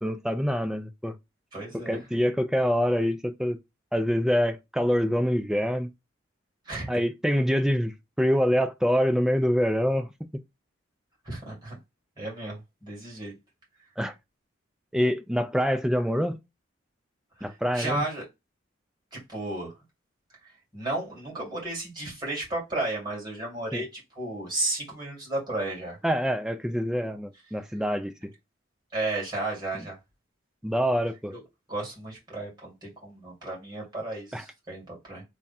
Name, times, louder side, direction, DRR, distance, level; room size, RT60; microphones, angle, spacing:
voice 1, 0.0-1.2 1.9-3.6 3.9-5.9 6.9-10.3 14.0-14.1 14.9-16.4 17.4-18.0 23.7-23.8 26.0-28.3 30.6-31.3 34.3-34.4, equal, 5° right, 0.4 m, -25 dB
voice 2, 1.5-2.0 6.7-7.0 11.2-11.8 12.2-13.3 17.4-18.2 19.1-19.7 20.7-26.0 28.9-30.0 31.3-31.4 31.7-35.2, right 2 dB, 20° right, 2.3 m, -33 dB
3.5 x 2.3 x 4.1 m
head